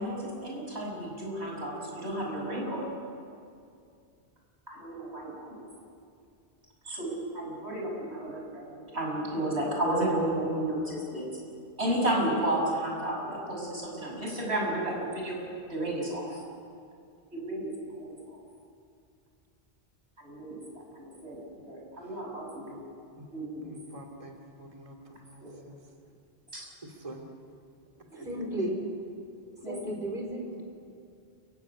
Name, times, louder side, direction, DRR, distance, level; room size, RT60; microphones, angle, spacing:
voice 1, 0.0-2.8 4.7-5.7 6.8-11.3 11.8-15.4 15.7-16.4 17.3-18.4 20.2-20.6 20.9-22.9 23.3-23.7 25.4-25.5 26.5-26.6 28.1-28.5 29.6-29.9, right 1 dB, 85° right, -2 dB, 6.9 m, -32 dB
voice 2, 23.6-25.7 27.0-27.2 28.1-28.2, right 1 dB, 30° right, 1 dB, 2.5 m, -47 dB
voice 3, 28.2-28.8 29.6-30.6, right 1 dB, 55° right, 1 dB, 4.7 m, -33 dB
29.0 x 15.5 x 9.8 m, 2.4 s
omnidirectional pair, 1.1 m